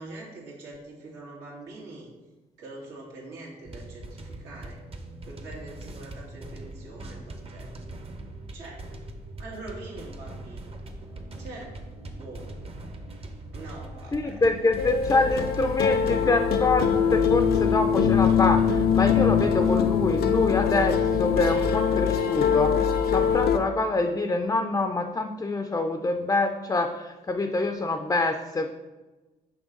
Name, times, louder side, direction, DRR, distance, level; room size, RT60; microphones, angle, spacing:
voice 1, 0.0-2.1 2.6-4.8 5.2-7.7 8.5-8.9 9.4-10.7 11.4-11.8 12.1-12.5 13.5-14.4 15.3-15.4, right 2 dB, 85° right, -3 dB, 2.0 m, -43 dB
sound 1, 3.7-18.7, right 2 dB, 35° right, 0.8 m, -41 dB
voice 2, 14.1-22.7 23.1-28.7, left 2 dB, 20° left, 6 dB, 0.5 m, -26 dB
sound 2, 14.8-23.6, left 7 dB, 65° left, 0.6 m, -23 dB
6.3 x 3.2 x 5.2 m, 1.2 s
cardioid pair, 80°, 17 cm